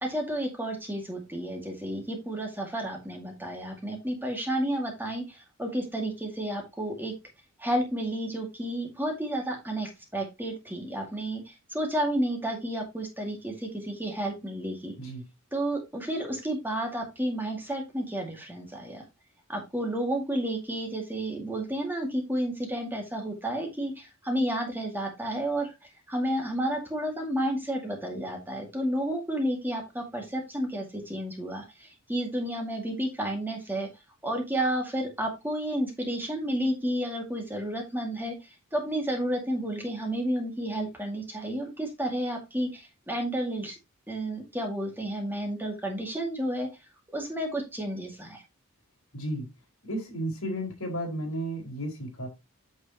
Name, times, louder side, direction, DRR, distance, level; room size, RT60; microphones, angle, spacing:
voice 1, 0.0-7.1 7.6-14.9 15.5-19.0 19.5-33.9 34.2-43.8 44.1-46.7 47.1-48.4, right 1 dB, 10° right, 2 dB, 2.1 m, -31 dB
voice 2, 49.1-49.5 49.8-52.3, right 1 dB, 65° left, 1 dB, 4.4 m, -33 dB
9.0 x 6.5 x 2.9 m, 0.22 s
head